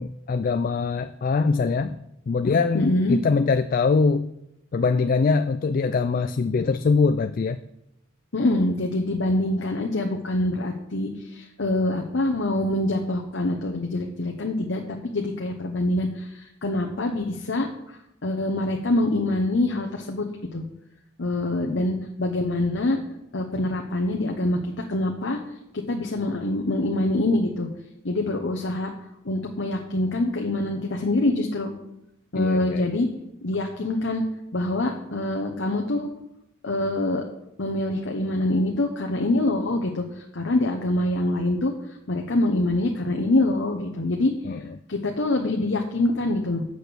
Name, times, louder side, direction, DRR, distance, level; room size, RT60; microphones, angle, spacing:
voice 1, 0.0-2.0 2.3-4.3 4.7-7.6 32.3-32.9 44.4-44.8, left 4 dB, 45° left, 10 dB, 0.3 m, -23 dB
voice 2, 2.7-3.2 8.3-20.3 20.5-20.6 21.2-23.0 23.3-25.4 25.7-27.7 28.0-28.9 29.2-31.7 32.3-33.1 33.4-34.2 34.5-36.1 36.6-37.2 37.6-41.7 42.1-44.3 44.9-46.6, left 2 dB, 75° left, 2 dB, 0.9 m, -25 dB
8.0 x 6.4 x 6.8 m, 0.84 s
head